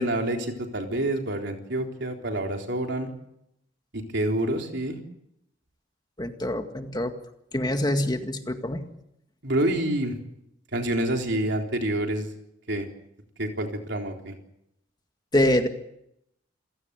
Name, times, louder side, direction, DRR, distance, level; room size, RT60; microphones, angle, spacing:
voice 1, 0.0-3.1 3.9-5.0 9.4-10.2 10.7-12.3 12.7-12.9 13.4-14.3, right 1 dB, 65° right, 3 dB, 3.8 m, -27 dB
voice 2, 6.2-7.2 7.5-8.9 15.3-15.7, left 1 dB, 20° left, 6 dB, 1.9 m, -25 dB
28.5 x 17.0 x 8.3 m, 0.80 s
head